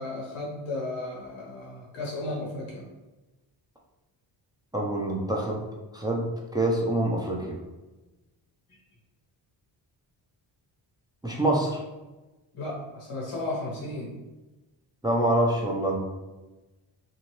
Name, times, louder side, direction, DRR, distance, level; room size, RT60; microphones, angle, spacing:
voice 1, 0.0-2.8 8.7-8.8 12.5-14.2, left 2 dB, 80° left, -4 dB, 1.3 m, -34 dB
voice 2, 4.7-5.6 5.9-7.6 11.2-11.8 15.0-16.0, right 1 dB, 10° right, -2 dB, 0.5 m, -26 dB
2.8 x 2.4 x 3.1 m, 1.1 s
cardioid pair, 60°, 49 cm